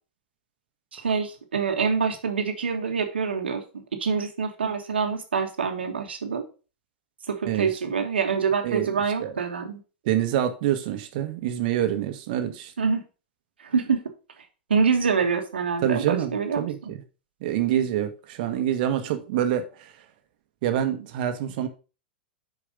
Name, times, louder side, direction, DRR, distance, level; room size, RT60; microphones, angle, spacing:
voice 1, 0.9-6.4 7.3-9.8 12.8-13.0 13.6-14.0 14.7-16.7, right 5 dB, 90° right, 1.6 m, -26 dB
voice 2, 8.6-9.3 10.0-12.7 15.8-17.0 17.4-19.9 20.6-21.7, right 11 dB, 60° right, 1.4 m, -26 dB
6.8 x 4.8 x 5.1 m
hypercardioid pair, 110°, 6 cm